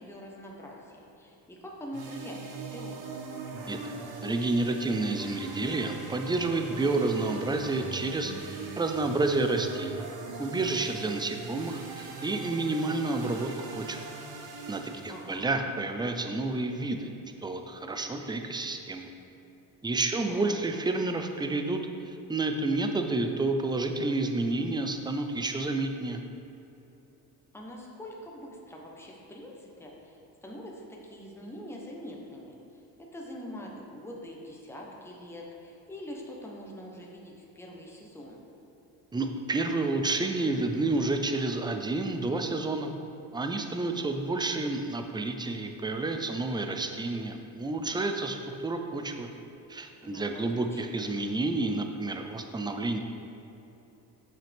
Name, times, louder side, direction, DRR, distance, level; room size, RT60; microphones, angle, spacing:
voice 1, 0.0-3.0 15.1-15.6 20.1-20.6 27.5-32.8 33.1-38.4 50.0-51.0, left 1 dB, 5° left, -2 dB, 1.1 m, -44 dB
sound 1, 1.9-15.4, right 3 dB, 60° right, 1.0 m, -41 dB
voice 2, 4.2-10.0 10.4-14.0 14.7-17.1 17.4-19.1 19.8-21.8 22.1-26.2 39.1-42.9 43.3-49.3 49.7-53.0, right 2 dB, 10° right, 5 dB, 0.5 m, -30 dB
7.5 x 5.9 x 3.6 m, 3.0 s
cardioid pair, 95°, 41 cm